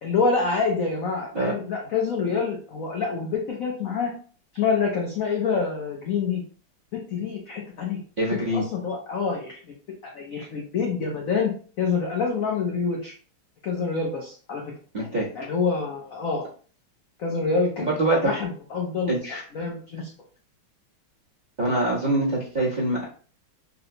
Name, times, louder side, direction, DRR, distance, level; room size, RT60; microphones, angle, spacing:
voice 1, 0.0-4.1 4.5-6.4 6.9-8.0 8.5-9.5 10.1-11.5 11.8-13.1 13.6-14.6 15.4-16.5 17.2-17.9 18.2-19.1 19.5-20.1, left 5 dB, 75° left, 0 dB, 0.7 m, -26 dB
voice 2, 8.2-8.6 14.9-15.3 17.8-18.3 19.1-19.4 21.6-23.1, right 1 dB, 30° right, -7 dB, 0.9 m, -24 dB
4.1 x 2.1 x 2.7 m, 0.41 s
omnidirectional pair, 2.2 m